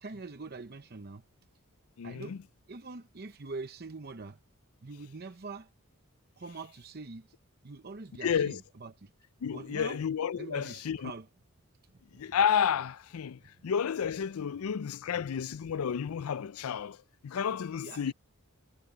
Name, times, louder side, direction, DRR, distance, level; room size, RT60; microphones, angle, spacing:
voice 1, 0.0-1.2 2.0-2.4 2.7-4.4 4.8-5.7 6.4-7.3 7.6-9.1 9.5-10.0 10.4-11.3 12.1-12.3 13.6-13.7 17.8-18.1, right 3 dB, 45° right, 0.8 m, -44 dB
voice 2, 2.0-2.4 8.2-8.6 9.4-11.1 12.1-17.0 17.2-18.1, left 7 dB, 85° left, 0.4 m, -31 dB
head